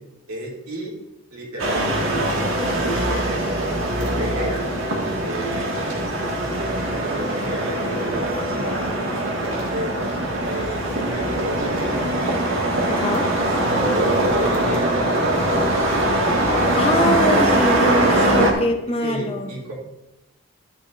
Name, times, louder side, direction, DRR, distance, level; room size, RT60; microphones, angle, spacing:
voice 1, 0.3-1.0 1.3-2.4 2.9-4.7 5.2-5.8 6.9-10.0 10.4-13.4 13.7-16.2 16.7-17.6 19.0-19.7, right 1 dB, 80° right, -4 dB, 2.7 m, -32 dB
sound 1, 1.6-18.5, right 1 dB, 60° right, 1.7 m, -22 dB
voice 2, 12.9-13.3 16.4-19.5, left 1 dB, 25° left, 5 dB, 0.7 m, -23 dB
12.0 x 8.5 x 2.5 m, 0.93 s
head